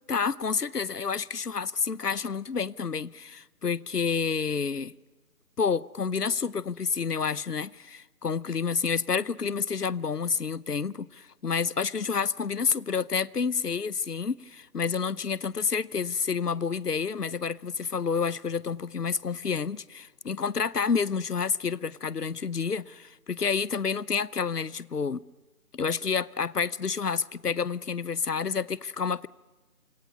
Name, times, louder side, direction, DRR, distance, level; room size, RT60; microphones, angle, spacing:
voice 1, 0.1-4.9 5.6-25.2 25.7-29.3, left 5 dB, 80° left, 0.8 m, -29 dB
28.5 x 25.5 x 5.5 m
figure-of-eight pair, 160°, 47 cm